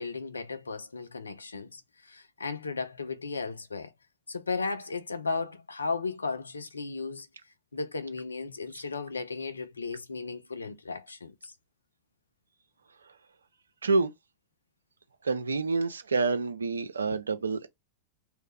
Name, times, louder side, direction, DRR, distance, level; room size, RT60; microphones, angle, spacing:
voice 1, 0.0-3.9 4.3-7.3 7.7-11.5 17.1-17.2, left 4 dB, 75° left, 0.4 m, -35 dB
voice 2, 15.2-17.7, right 3 dB, 75° right, 0.4 m, -27 dB
2.3 x 2.0 x 3.2 m
figure-of-eight pair, 90°, 0 cm